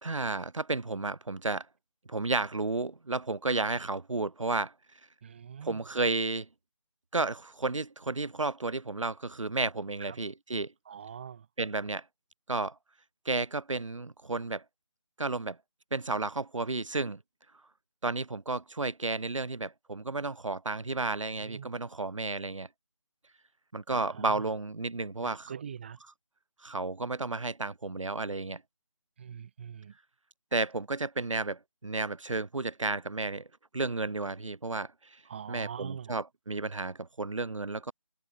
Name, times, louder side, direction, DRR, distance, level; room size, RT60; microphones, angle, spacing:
voice 1, 0.0-1.7 2.1-4.7 5.6-6.5 7.1-10.7 11.6-12.0 12.5-12.7 13.2-14.6 15.2-15.6 15.9-17.2 18.0-22.7 23.7-25.5 26.6-28.6 30.5-33.5 33.7-35.2 35.5-37.9, right 3 dB, 75° right, 2.9 m, -32 dB
voice 2, 5.2-5.8 10.1-10.2 10.9-11.5 20.9-21.7 23.9-24.5 25.2-26.0 29.2-29.9 35.3-36.2, right 8 dB, 20° right, 7.8 m, -43 dB
figure-of-eight pair, 175°, 16 cm